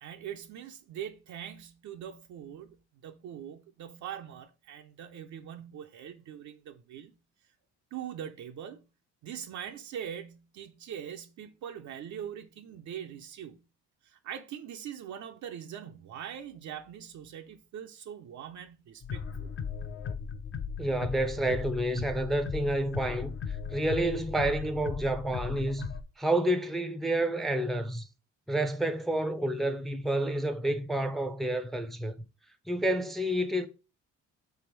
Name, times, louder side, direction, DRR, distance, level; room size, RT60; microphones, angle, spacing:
voice 1, 0.0-7.2 7.9-8.9 9.2-13.6 14.0-19.5, right 9 dB, 70° right, 0.6 m, -42 dB
sound 1, 19.0-26.0, left 6 dB, 45° left, 0.6 m, -37 dB
voice 2, 20.8-25.9 26.2-28.1 28.5-32.1 32.7-33.7, right 1 dB, ahead, 0.5 m, -29 dB
3.5 x 3.4 x 4.6 m
cardioid pair, 90°, 30 cm